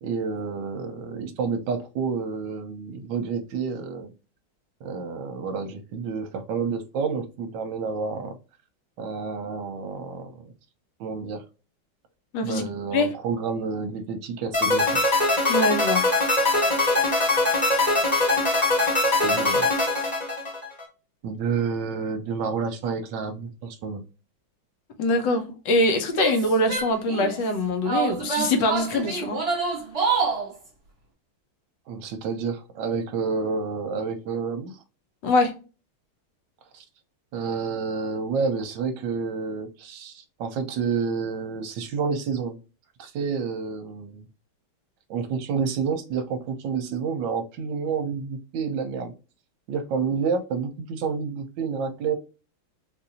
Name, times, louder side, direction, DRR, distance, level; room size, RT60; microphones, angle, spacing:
voice 1, 0.0-4.1 4.8-8.4 9.0-10.4 11.0-11.4 12.4-15.0 19.2-19.7 21.2-24.0 31.9-34.8 36.7-36.8 37.3-42.6 43.0-44.3 45.1-49.1 49.7-52.1, right 5 dB, 70° right, 1.3 m, -29 dB
voice 2, 12.3-12.7 12.9-13.1 15.5-16.0 25.0-29.4 35.2-35.5, left 2 dB, 65° left, 1.3 m, -23 dB
sound 1, 14.5-20.8, left 2 dB, 25° left, 1.1 m, -22 dB
Female speech woman speaking / Yell, 26.1-27.4 27.9-30.5, right 4 dB, 30° right, 1.4 m, -26 dB
4.0 x 2.6 x 2.8 m
omnidirectional pair, 2.3 m